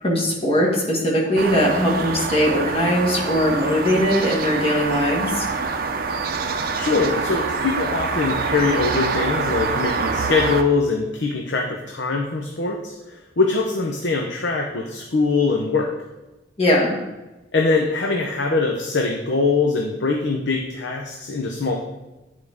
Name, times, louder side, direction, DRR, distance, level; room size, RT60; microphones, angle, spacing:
voice 1, 0.0-5.4 16.6-16.9, equal, 30° left, -2 dB, 1.7 m, -20 dB
sound 1, 1.4-10.6, right 4 dB, 50° right, 0.5 m, -25 dB
voice 2, 6.8-15.9 17.5-21.7, left 4 dB, 70° left, 1 dB, 0.7 m, -22 dB
10.0 x 4.8 x 3.5 m, 1.0 s
head